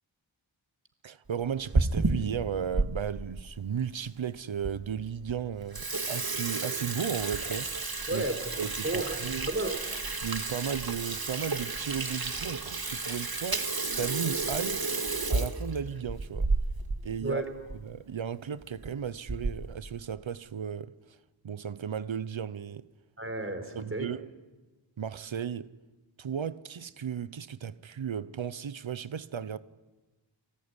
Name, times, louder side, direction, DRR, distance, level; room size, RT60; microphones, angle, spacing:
voice 1, 1.0-7.8 8.1-8.2 8.6-9.5 10.2-13.7 14.0-14.9 15.3-16.5 17.0-17.4 17.8-21.2 21.4-22.9 23.8-24.3 25.0-25.7 26.2-29.6, right 8 dB, 85° right, 0.8 m, -35 dB
Water tap faucet / Sink (filling or washing), 1.4-2.9 3.4-3.5 4.2-4.3 4.6-4.7 5.1-5.3 5.6-17.0 17.3-17.4 17.7-17.8 18.6-18.9 19.3-19.7, right 3 dB, 50° right, 2.2 m, -31 dB
voice 2, 8.1-9.2 9.5-9.8 17.2-17.5 23.2-24.1, right 2 dB, 30° right, 4.2 m, -33 dB
29.5 x 20.0 x 9.8 m
wide cardioid pair, 70°, 45 cm